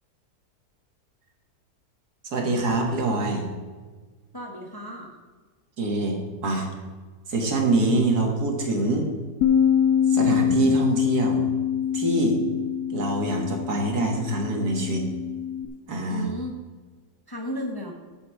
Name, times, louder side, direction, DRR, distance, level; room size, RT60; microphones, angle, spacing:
voice 1, 2.3-3.5 5.8-6.7 7.3-9.1 10.1-11.5 11.9-12.4 12.9-15.0 15.9-16.3, right 2 dB, 65° right, 2 dB, 2.2 m, -24 dB
voice 2, 4.3-5.2 16.1-16.6 17.3-17.9, equal, 15° left, 1 dB, 0.9 m, -34 dB
Bass guitar, 9.4-15.7, left 9 dB, 75° left, 1.3 m, -24 dB
11.5 x 7.7 x 4.8 m, 1.4 s
omnidirectional pair, 1.8 m